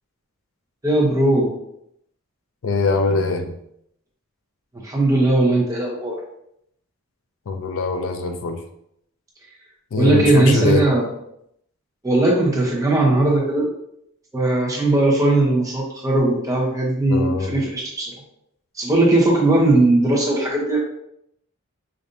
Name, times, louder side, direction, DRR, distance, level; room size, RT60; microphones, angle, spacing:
voice 1, 0.8-1.5 4.7-6.2 9.5-9.6 9.9-11.0 12.0-13.7 14.3-18.2 18.7-20.8, right 2 dB, 15° right, -3 dB, 0.9 m, -18 dB
voice 2, 2.6-3.6 7.5-8.6 9.9-10.8 17.1-17.5, left 3 dB, 65° left, 6 dB, 0.4 m, -22 dB
5.1 x 2.5 x 2.7 m, 0.75 s
head